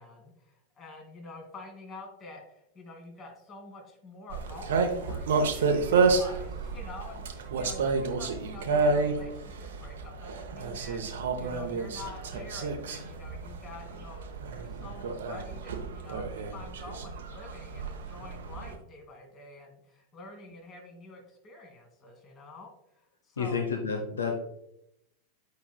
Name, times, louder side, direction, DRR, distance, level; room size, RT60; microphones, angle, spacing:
voice 1, 0.0-14.3 14.5-23.6, left 2 dB, 30° left, 3 dB, 1.6 m, -47 dB
sound 1, 4.3-18.8, right 4 dB, 60° right, 0.8 m, -30 dB
voice 2, 23.4-24.3, left 5 dB, 70° left, 3 dB, 0.7 m, -30 dB
8.2 x 5.2 x 2.2 m, 0.79 s
figure-of-eight pair, 90°, 0 cm